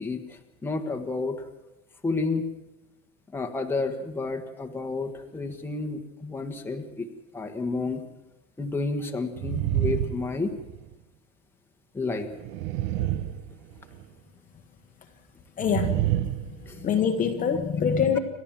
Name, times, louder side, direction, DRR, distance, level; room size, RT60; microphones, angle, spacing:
voice 1, 0.0-1.4 2.0-2.5 3.3-7.1 7.3-8.0 8.6-10.5 11.9-12.3 16.7-16.8, left 3 dB, 5° left, 4 dB, 1.4 m, -30 dB
sound 1, 9.3-10.9 12.3-14.0 15.6-17.1, right 13 dB, 55° right, 1.1 m, -28 dB
voice 2, 15.6-16.0 16.5-18.2, left 7 dB, 25° left, 5 dB, 1.2 m, -25 dB
29.0 x 12.5 x 7.4 m, 1.0 s
cardioid pair, 170°, 35 cm